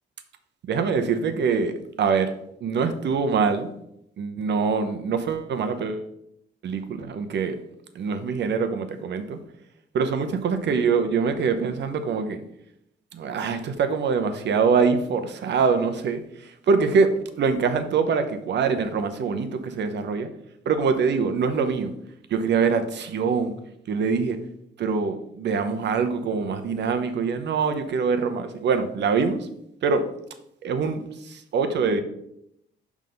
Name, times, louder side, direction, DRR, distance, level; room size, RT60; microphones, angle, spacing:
voice 1, 0.7-2.3 2.6-3.7 4.2-6.1 6.6-7.6 7.9-9.4 9.9-12.4 13.1-17.1 17.4-20.3 20.7-21.9 22.3-23.6 23.9-24.4 24.8-29.5 29.8-30.0 30.6-32.0, right 5 dB, 60° right, 8 dB, 0.8 m, -24 dB
5.9 x 3.6 x 5.3 m, 0.77 s
cardioid pair, 90°, 20 cm